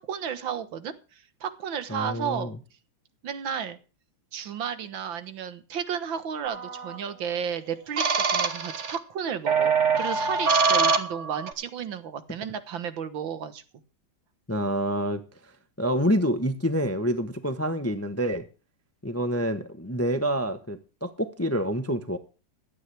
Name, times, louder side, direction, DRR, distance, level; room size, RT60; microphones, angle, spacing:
voice 1, 0.0-2.5 3.2-3.8 4.3-13.6, right 8 dB, 75° right, 2.0 m, -33 dB
voice 2, 1.9-2.6 14.5-15.2 15.8-18.4 19.0-22.2, equal, 10° left, 0.7 m, -27 dB
sound 1, 6.4-7.0 8.0-9.0 9.5-11.5, right 5 dB, 40° right, 1.4 m, -24 dB
16.5 x 12.5 x 3.4 m
omnidirectional pair, 2.2 m